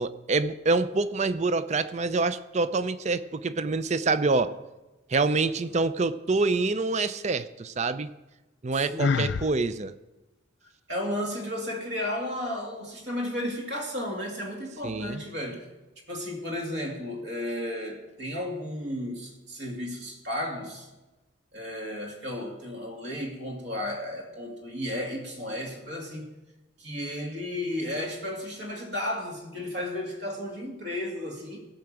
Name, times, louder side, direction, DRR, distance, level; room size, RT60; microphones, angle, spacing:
voice 1, 0.0-4.5 5.1-8.1 8.6-9.9 14.8-15.2, right 3 dB, 35° right, 13 dB, 0.5 m, -26 dB
voice 2, 8.7-9.1 10.9-15.7 16.1-20.9 21.5-26.3 26.8-31.6, left 1 dB, 60° right, 1 dB, 2.5 m, -33 dB
Sigh, 9.0-9.5, left 5 dB, 60° left, 0.4 m, -25 dB
17.0 x 5.9 x 7.7 m, 1.1 s
head